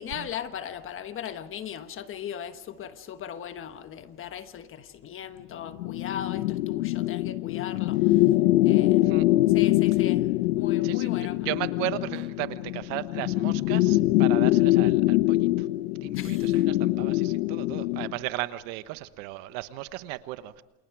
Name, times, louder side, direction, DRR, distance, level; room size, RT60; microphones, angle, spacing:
voice 1, 0.0-8.3 8.6-9.1 9.5-11.5 16.1-16.5, left 9 dB, 30° left, 1.3 m, -38 dB
sound 1, 5.7-18.2, left 17 dB, 90° left, 0.8 m, -23 dB
voice 2, 11.4-15.4 16.0-20.6, right 16 dB, 60° right, 1.2 m, -35 dB
28.5 x 27.5 x 4.8 m
supercardioid pair, 140°, 44 cm